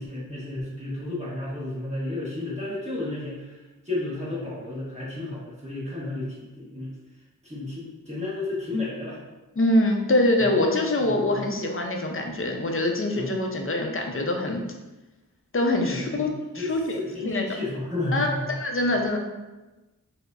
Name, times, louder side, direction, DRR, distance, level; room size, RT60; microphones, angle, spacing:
voice 1, 0.0-6.9 7.4-9.2 10.4-10.5 11.0-11.5 13.1-13.3 15.8-18.6 18.8-19.2, left 2 dB, 20° right, -8 dB, 1.0 m, -32 dB
voice 2, 9.6-14.6 15.5-17.4 18.1-19.2, left 1 dB, 40° left, 2 dB, 0.5 m, -24 dB
4.5 x 2.1 x 2.4 m, 1.1 s
wide cardioid pair, 70°, 35 cm